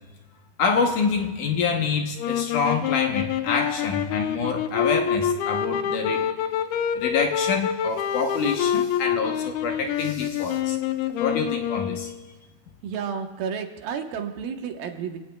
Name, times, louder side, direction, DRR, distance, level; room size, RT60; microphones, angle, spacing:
voice 1, 0.6-6.3 6.9-10.8 11.2-12.1, left 5 dB, 70° left, 3 dB, 2.2 m, -26 dB
sound 1, 2.2-12.2, left 9 dB, 85° left, 2.7 m, -26 dB
voice 2, 12.8-15.2, right 7 dB, 75° right, 4 dB, 2.8 m, -31 dB
28.0 x 17.5 x 2.3 m, 1.3 s
omnidirectional pair, 4.3 m